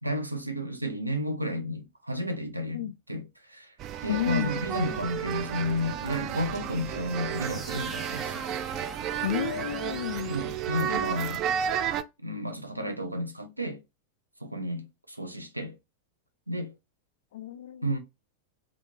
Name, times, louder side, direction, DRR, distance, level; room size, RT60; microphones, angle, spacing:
voice 1, 0.0-3.8 4.0-8.4 10.3-11.4 12.2-13.8 14.4-15.8 16.5-16.7 17.8-18.0, equal, 85° right, 0.6 m, -32 dB
sound 1, 3.8-12.0, right 9 dB, 35° right, 0.3 m, -32 dB
voice 2, 4.1-4.5 9.2-10.3 17.3-17.9, left 11 dB, 60° left, 0.3 m, -31 dB
sound 2, 7.3-11.1, right 3 dB, 15° right, 0.8 m, -44 dB
3.5 x 2.5 x 2.7 m
figure-of-eight pair, 90°, 0 cm